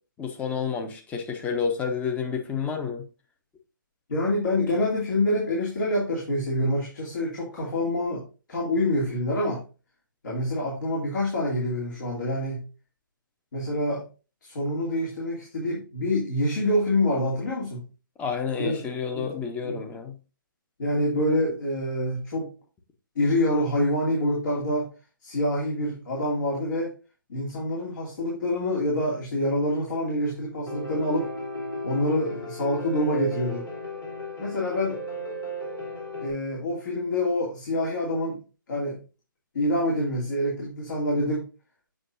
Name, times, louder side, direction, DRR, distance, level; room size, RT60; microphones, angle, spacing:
voice 1, 0.2-3.0 18.2-20.2, left 6 dB, 10° left, 0.9 m, -30 dB
voice 2, 4.1-8.2 8.5-9.6 10.2-12.6 13.5-14.1 14.4-17.8 18.6-18.9 19.1-19.3 19.6-19.8 20.8-22.5 23.2-24.9 25.2-26.9 27.3-31.3 31.8-33.7 34.4-35.0 36.2-38.4 38.7-39.0 39.5-41.5, left 1 dB, 60° left, 2.6 m, -26 dB
Piano, 30.7-36.3, equal, 85° left, 3.1 m, -35 dB
7.5 x 6.0 x 2.6 m
hypercardioid pair, 145°, 11 cm